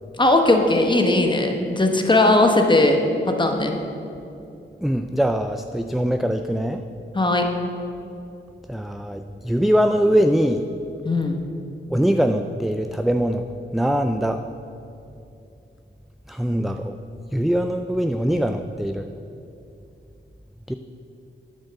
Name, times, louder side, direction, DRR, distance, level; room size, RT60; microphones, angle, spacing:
voice 1, 0.2-3.7 7.1-7.5 11.0-11.4, left 2 dB, 25° left, 3 dB, 1.0 m, -18 dB
voice 2, 4.8-6.8 8.7-10.7 11.9-13.4 13.7-14.4 16.3-16.9 17.3-19.1 20.7-20.8, equal, ahead, 7 dB, 0.3 m, -22 dB
8.8 x 5.4 x 7.7 m, 2.7 s
wide cardioid pair, 90°, 20 cm